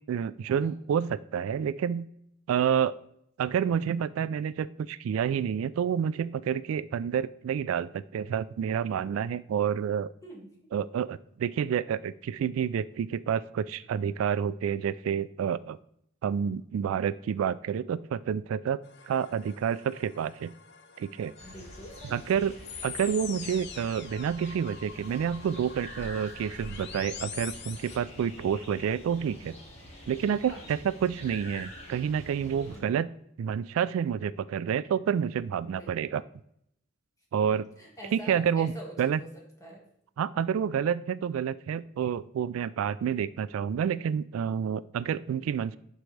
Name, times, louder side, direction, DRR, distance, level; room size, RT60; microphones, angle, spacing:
voice 1, 0.1-2.1 2.5-2.9 3.4-10.1 10.7-15.8 16.2-18.8 19.1-20.5 21.0-21.3 22.1-22.5 22.8-29.5 30.1-33.1 33.4-36.2 37.3-37.6 38.1-38.7 39.0-39.2 40.2-45.8, right 8 dB, 85° right, 17 dB, 0.3 m, -29 dB
voice 2, 10.2-10.5 21.4-22.3 30.5-30.7 32.6-32.9 35.6-36.2 37.3-39.3 39.6-39.8, equal, 15° left, -2 dB, 1.9 m, -46 dB
sound 1, 18.8-28.0, left 8 dB, 55° left, 0.7 m, -45 dB
sound 2, 21.4-32.8, equal, 30° left, 1.9 m, -47 dB
11.5 x 4.6 x 3.2 m, 0.72 s
head